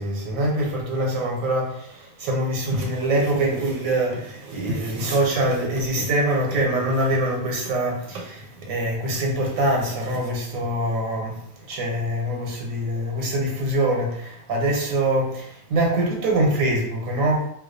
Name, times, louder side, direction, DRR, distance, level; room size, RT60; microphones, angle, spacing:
voice 1, 0.0-11.4 11.7-17.5, right 1 dB, 80° right, -1 dB, 1.0 m, -24 dB
2.2 x 2.2 x 2.4 m, 0.73 s
omnidirectional pair, 1.4 m